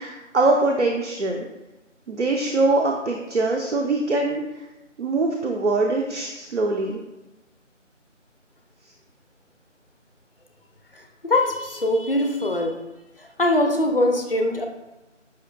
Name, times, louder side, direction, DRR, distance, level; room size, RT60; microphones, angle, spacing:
voice 1, 0.0-1.5 2.1-4.4 5.0-7.0, right 2 dB, 65° right, 1 dB, 0.6 m, -23 dB
voice 2, 11.2-12.7 13.4-14.6, left 1 dB, 50° left, 4 dB, 0.5 m, -22 dB
5.6 x 2.9 x 2.4 m, 1.0 s
figure-of-eight pair, 170°, 37 cm